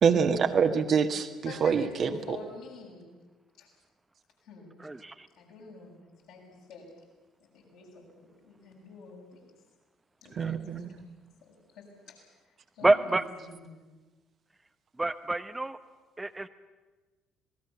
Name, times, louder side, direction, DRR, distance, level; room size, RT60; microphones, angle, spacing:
voice 1, 0.0-2.4 10.4-11.0, right 6 dB, 50° right, 6 dB, 1.7 m, -26 dB
voice 2, 1.4-3.1 3.6-3.7 4.4-4.8 5.3-6.9 7.4-9.5 10.2-11.0 11.4-12.3 12.7-13.8, left 4 dB, 65° left, -3 dB, 7.4 m, -48 dB
voice 3, 4.8-5.3 10.3-10.5 12.8-13.2 15.0-15.8 16.2-16.5, right 2 dB, 15° right, 10 dB, 1.0 m, -27 dB
26.5 x 19.0 x 7.2 m, 1.3 s
figure-of-eight pair, 50°, 0 cm